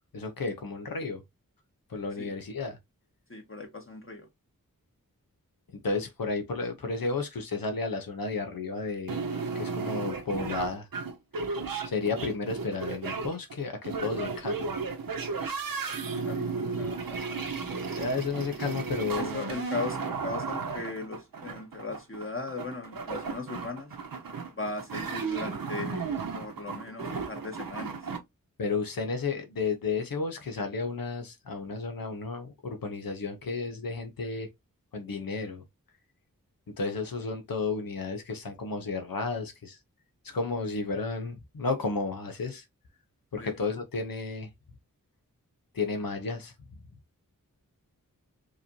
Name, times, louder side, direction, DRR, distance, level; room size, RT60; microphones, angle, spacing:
voice 1, 0.1-1.2 1.9-2.8 5.8-9.2 9.5-10.9 11.8-14.8 18.0-19.4 28.6-34.5 34.9-35.6 36.8-39.8 40.2-42.6 43.3-44.5 45.7-46.5, left 4 dB, 85° left, 0.9 m, -32 dB
voice 2, 3.3-4.3 16.2-17.5 19.2-23.9 24.6-27.9 43.4-43.6, left 3 dB, 35° left, 2.0 m, -38 dB
sound 1, 9.1-28.2, right 4 dB, 85° right, 1.0 m, -34 dB
4.8 x 3.1 x 2.8 m
cardioid pair, 45°, 34 cm